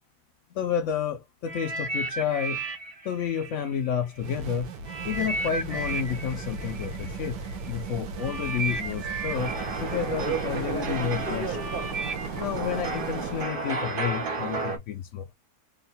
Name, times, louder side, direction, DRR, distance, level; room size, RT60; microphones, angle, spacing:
voice 1, 0.5-2.6 3.0-4.7 5.0-7.4 7.7-9.5 9.8-11.6 12.4-15.3, left 8 dB, 75° left, 0.6 m, -30 dB
sound 1, 1.4-4.4 4.8-13.8 14.6-14.7, right 3 dB, 30° right, 0.8 m, -36 dB
sound 2, 4.2-13.5, right 3 dB, 75° right, 1.4 m, -37 dB
sound 3, 9.3-14.8, right 4 dB, 60° right, 0.5 m, -32 dB
3.6 x 2.3 x 4.0 m
omnidirectional pair, 1.9 m